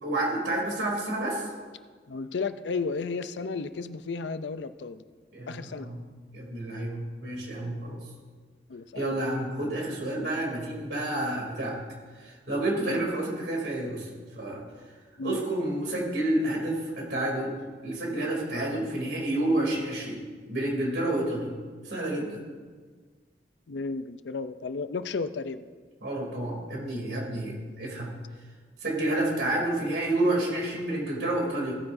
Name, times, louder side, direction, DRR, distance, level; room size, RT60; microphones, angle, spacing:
voice 1, 0.0-1.5 5.3-6.0 6.3-8.0 8.9-11.8 12.2-14.1 14.4-14.6 15.2-17.6 17.8-20.2 20.5-21.5 21.8-22.4 26.0-28.2 28.8-31.8, right 1 dB, 80° right, -1 dB, 2.9 m, -29 dB
voice 2, 2.1-5.0 5.5-5.9 8.7-9.2 12.8-13.1 15.2-15.4 23.7-25.7, left 4 dB, 90° left, 11 dB, 0.5 m, -33 dB
17.0 x 9.6 x 2.7 m, 1.5 s
head